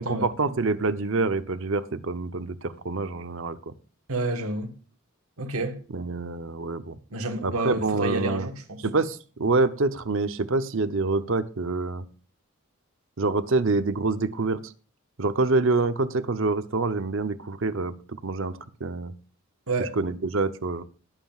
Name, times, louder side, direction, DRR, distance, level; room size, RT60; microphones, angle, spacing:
voice 1, 0.0-3.7 5.9-7.0 7.4-8.5 8.8-12.0 13.2-14.6 15.2-19.1 19.8-20.8, right 3 dB, 60° right, 0.7 m, -26 dB
voice 2, 4.1-4.7 5.4-5.8 7.1-8.8 19.7-19.9, right 2 dB, 80° right, 1.4 m, -29 dB
20.5 x 7.5 x 2.4 m
head